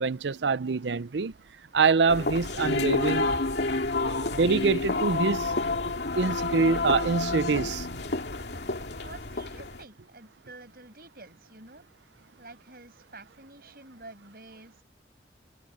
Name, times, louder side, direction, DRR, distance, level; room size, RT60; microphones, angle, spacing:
voice 1, 0.0-1.3 1.7-3.3 4.3-5.5 6.1-7.9, right 4 dB, 85° right, 0.6 m, -25 dB
sound 1, 2.1-9.8, left 2 dB, 75° left, 2.3 m, -29 dB
voice 2, 9.0-11.8 12.4-14.8, right 2 dB, 55° right, 6.6 m, -49 dB
head